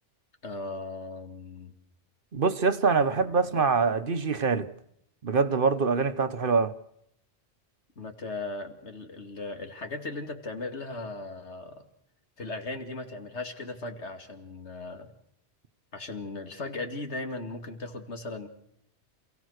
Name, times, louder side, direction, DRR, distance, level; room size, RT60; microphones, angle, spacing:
voice 1, 0.4-1.7 3.1-3.7 8.0-11.8 12.4-15.1 15.9-18.5, left 2 dB, 90° left, 2.7 m, -37 dB
voice 2, 2.3-4.7 5.2-6.7, right 5 dB, 55° right, 1.2 m, -24 dB
28.0 x 16.5 x 6.5 m
omnidirectional pair, 1.1 m